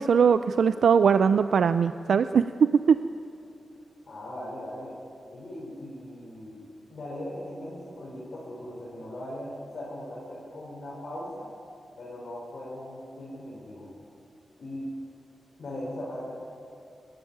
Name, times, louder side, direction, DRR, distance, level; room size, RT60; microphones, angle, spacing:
voice 1, 0.0-2.4 2.9-3.0, right 6 dB, 75° right, 11 dB, 0.4 m, -21 dB
voice 2, 4.1-5.0 5.3-6.6 6.9-11.5 12.0-13.9 14.6-14.9 15.6-16.3, left 1 dB, 50° left, -6 dB, 4.4 m, -39 dB
27.0 x 12.0 x 9.5 m, 2.6 s
wide cardioid pair, 170°, 0 cm